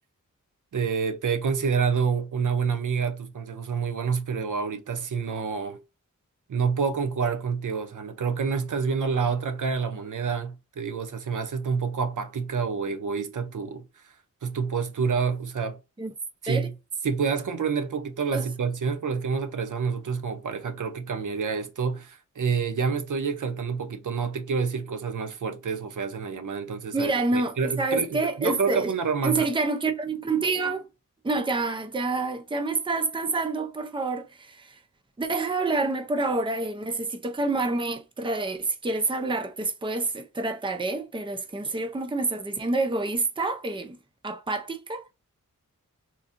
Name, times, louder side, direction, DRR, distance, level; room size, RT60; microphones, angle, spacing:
voice 1, 0.7-5.8 6.5-14.1 14.4-15.8 16.4-16.7 17.0-29.5, right 5 dB, 70° right, 0.6 m, -28 dB
voice 2, 26.9-28.9 29.2-30.8 31.2-34.8 35.2-44.0 44.2-45.1, right 3 dB, 15° right, 0.5 m, -28 dB
3.9 x 2.4 x 2.5 m
wide cardioid pair, 90°, 31 cm